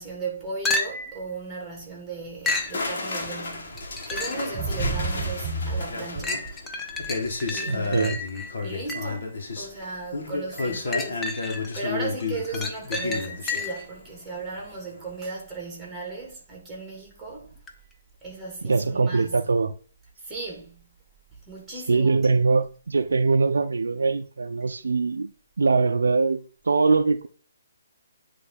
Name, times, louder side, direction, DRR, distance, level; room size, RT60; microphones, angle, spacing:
voice 1, 0.0-6.7 7.5-8.1 8.6-17.5 18.2-19.5 20.2-21.0 21.5-22.5, right 3 dB, 5° right, 2.5 m, -36 dB
sound 1, 0.7-1.2 2.5-2.8 3.8-4.5 5.1-5.2 6.2-9.2 10.6-11.8 12.2-13.9 17.7-17.8, left 3 dB, 10° left, 0.7 m, -31 dB
sound 2, 2.5-14.6 14.8-15.2, left 3 dB, 55° left, 1.8 m, -32 dB
sound 3, 3.3-3.5 3.7-4.2 4.5-6.5 6.9-7.3 7.8-7.9, right 3 dB, 20° right, 1.7 m, -31 dB
voice 2, 7.6-8.2 18.6-19.7 21.9-25.3 25.6-27.3, right 4 dB, 80° right, 0.5 m, -22 dB
9.6 x 3.2 x 3.9 m
hypercardioid pair, 150°, 0 cm